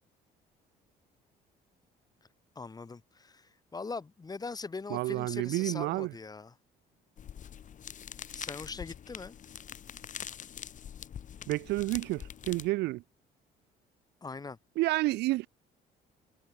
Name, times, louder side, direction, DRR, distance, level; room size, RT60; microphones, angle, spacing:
voice 1, 2.6-6.5 8.3-9.4 14.2-14.6, left 4 dB, 20° left, 3.6 m, -41 dB
voice 2, 4.9-6.1 11.5-13.0 14.8-15.5, right 19 dB, 85° right, 0.9 m, -30 dB
sound 1, 7.2-12.7, left 9 dB, 50° left, 3.3 m, -44 dB
cardioid pair, 110°, 17 cm